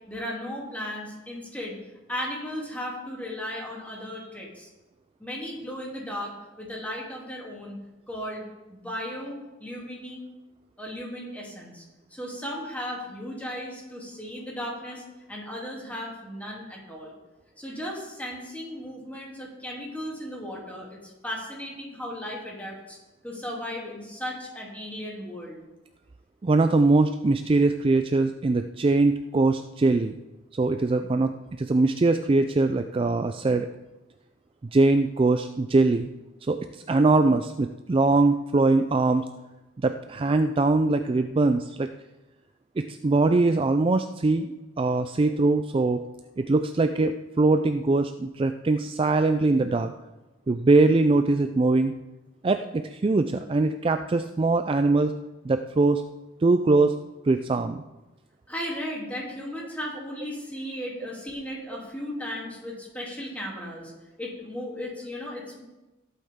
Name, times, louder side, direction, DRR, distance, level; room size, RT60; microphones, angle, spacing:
voice 1, 0.1-1.8 2.1-4.7 5.2-7.8 8.1-8.4 8.7-10.2 10.8-11.8 12.1-15.0 15.3-17.1 17.6-23.0 23.2-25.6 58.5-63.9 64.2-65.6, equal, 10° left, -3 dB, 2.9 m, -36 dB
voice 2, 26.4-30.2 30.5-33.7 34.7-36.1 36.4-39.2 39.8-41.9 42.8-44.5 44.8-46.0 46.4-49.9 50.5-51.9 52.4-55.1 55.4-56.0 56.4-57.0 57.2-57.8, right 3 dB, 30° right, 8 dB, 0.3 m, -22 dB
17.5 x 8.5 x 3.7 m, 1.1 s
head